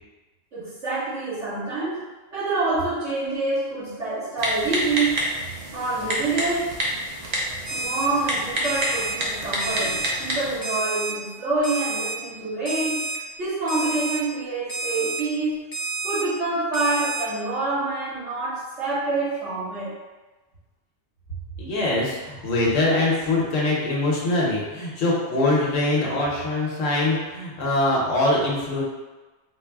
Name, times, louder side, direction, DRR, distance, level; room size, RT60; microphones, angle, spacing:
voice 1, 0.5-2.0 2.3-5.3 5.7-6.8 7.7-13.0 13.4-15.7 16.0-20.0, right 3 dB, 65° right, -11 dB, 1.8 m, -26 dB
Typing, 4.4-10.6, right 1 dB, 45° right, 0.6 m, -28 dB
Alarm, 7.6-8.1 8.6-9.1 9.6-10.1 10.6-11.1 11.6-12.1 12.6-13.2 13.7-14.2 14.7-15.2 15.7-16.2 16.7-17.2, right 3 dB, 30° left, 0.4 m, -29 dB
voice 2, 21.6-28.8, left 2 dB, 75° left, -4 dB, 1.3 m, -23 dB
3.9 x 2.1 x 3.5 m, 1.2 s
omnidirectional pair, 1.3 m